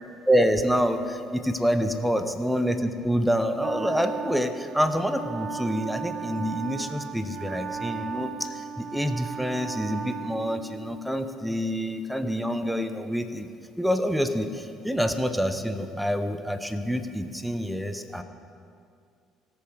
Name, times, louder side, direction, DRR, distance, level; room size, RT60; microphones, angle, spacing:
voice 1, 0.3-13.5 13.8-18.2, equal, ahead, 9 dB, 0.9 m, -27 dB
Wind instrument woodwind instrument, 3.6-11.1, right 7 dB, 45° right, 0.5 m, -36 dB
18.5 x 6.9 x 4.8 m, 2.4 s
figure-of-eight pair, 50°, 0 cm